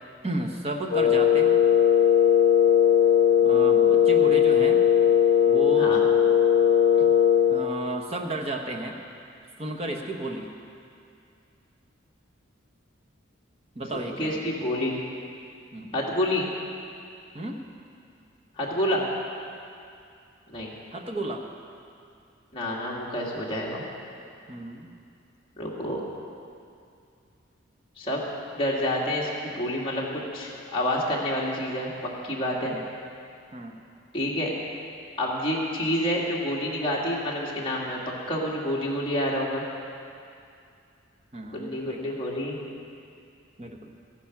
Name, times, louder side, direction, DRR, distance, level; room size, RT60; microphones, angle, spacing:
voice 1, 0.2-1.5 3.4-4.8 5.5-6.0 7.0-7.1 7.5-9.0 9.6-10.5 13.7-14.4 15.7-15.9 17.3-17.6 20.9-21.4 24.5-24.9 32.6-32.8 33.5-33.8 41.3-42.2 43.6-43.9, right 1 dB, 30° right, 2 dB, 1.1 m, -33 dB
Wind instrument woodwind instrument, 0.9-7.6, left 9 dB, 50° left, 1.1 m, -19 dB
voice 2, 14.1-15.0 15.9-16.5 18.6-19.0 20.5-20.7 22.5-23.8 25.6-26.0 28.0-28.2 28.5-31.9 32.2-32.7 34.1-34.5 35.2-38.0 38.3-39.6 41.5-42.6, left 1 dB, 25° left, -5 dB, 2.0 m, -28 dB
14.5 x 10.0 x 6.0 m, 2.5 s
head